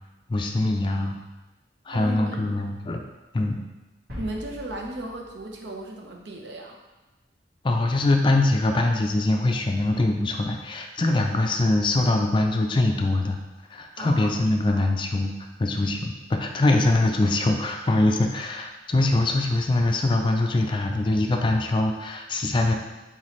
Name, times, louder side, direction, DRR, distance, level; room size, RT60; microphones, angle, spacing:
voice 1, 0.3-1.2 1.9-3.0 3.3-3.6 7.6-13.4 13.7-15.3 15.6-22.7, left 2 dB, 30° left, 3 dB, 0.4 m, -23 dB
voice 2, 1.9-2.4 4.2-6.8 14.0-14.9, right 1 dB, 85° right, 1 dB, 0.7 m, -36 dB
sound 1, 4.1-6.6, equal, 55° right, 1.4 m, -42 dB
4.0 x 3.9 x 3.1 m, 1.1 s
head